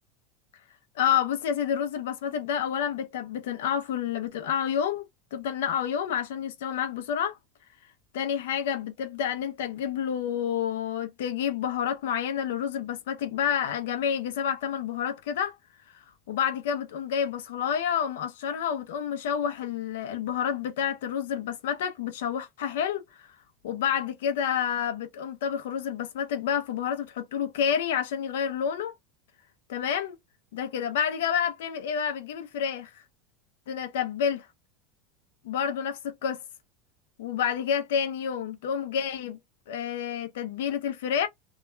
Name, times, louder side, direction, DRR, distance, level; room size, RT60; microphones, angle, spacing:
voice 1, 1.0-7.4 8.1-15.6 16.3-23.3 23.6-28.9 29.7-30.2 30.5-33.0 33.7-34.5 35.4-36.4 37.2-39.4 39.7-41.3, left 8 dB, 90° left, 0.5 m, -29 dB
2.3 x 2.2 x 3.0 m
supercardioid pair, 155°, 0 cm